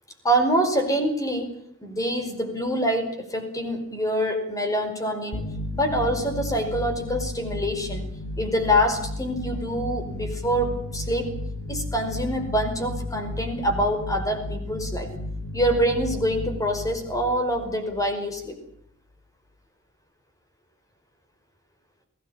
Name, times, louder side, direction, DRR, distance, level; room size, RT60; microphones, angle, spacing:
voice 1, 0.2-1.5 1.8-5.4 5.7-8.1 8.4-11.4 11.7-15.1 15.5-18.6, equal, 15° left, 6 dB, 5.4 m, -25 dB
sound 1, 5.3-18.5, left 1 dB, 45° left, 3.8 m, -34 dB
22.0 x 18.0 x 8.9 m, 0.69 s
head